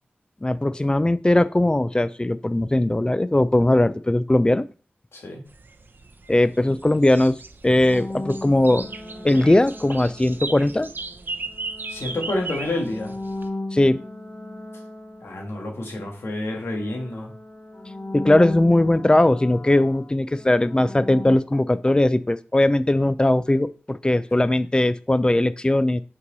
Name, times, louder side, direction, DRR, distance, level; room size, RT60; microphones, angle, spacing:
voice 1, 0.4-4.6 6.3-7.4 7.6-8.9 9.2-10.9 13.7-14.0 18.1-26.0, left 1 dB, 20° left, 15 dB, 0.5 m, -19 dB
voice 2, 5.1-5.4 11.9-13.1 15.2-17.3, left 1 dB, 85° left, 0 dB, 1.8 m, -29 dB
sound 1, 5.5-13.5, right 3 dB, 55° right, 0.6 m, -37 dB
sound 2, 7.9-10.8 11.5-16.3 16.5-21.4, left 2 dB, 40° left, 1.2 m, -36 dB
5.8 x 4.7 x 4.0 m, 0.36 s
wide cardioid pair, 55°, 4 cm